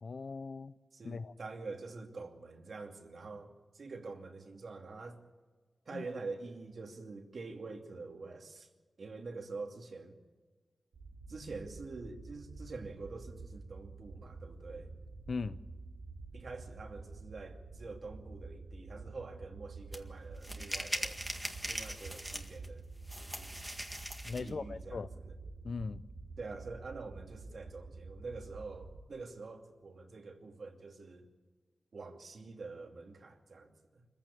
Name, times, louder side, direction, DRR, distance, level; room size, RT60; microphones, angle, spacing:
voice 1, 0.0-0.7 1.0-1.3 5.9-6.0 15.3-15.6 24.2-25.1 25.6-26.0, left 4 dB, 55° left, 0.7 m, -39 dB
voice 2, 0.9-5.2 5.9-8.7 9.0-10.2 11.3-14.9 16.3-21.2 21.7-22.9 23.1-23.5 24.4-25.4 26.4-31.3 31.9-34.1, right 3 dB, 60° right, 2.5 m, -46 dB
sound 1, 10.9-29.0, right 3 dB, 85° right, 2.5 m, -49 dB
sound 2, 19.9-20.0 20.4-22.7 23.1-24.5, equal, 5° right, 1.8 m, -40 dB
25.5 x 15.0 x 8.5 m
wide cardioid pair, 110°, 0 cm